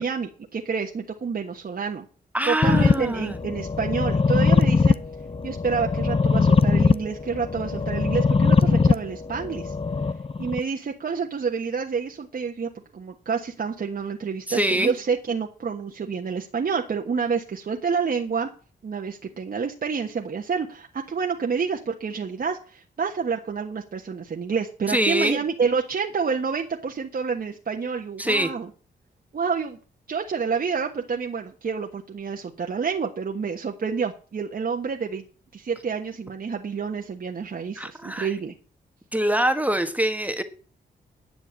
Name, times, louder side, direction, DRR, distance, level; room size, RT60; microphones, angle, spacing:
voice 1, 0.0-2.0 2.5-5.0 5.4-9.7 10.4-18.5 18.8-28.7 29.3-29.8 30.1-35.2 35.5-38.5, right 5 dB, 50° right, 1.4 m, -28 dB
voice 2, 2.3-3.4 14.5-14.9 24.9-25.4 28.2-28.5 37.8-38.3 39.1-40.4, right 1 dB, 10° right, 1.4 m, -24 dB
sound 1, 2.6-10.6, left 4 dB, 30° left, 0.7 m, -21 dB
10.5 x 7.0 x 8.4 m
cardioid pair, 80°, 19 cm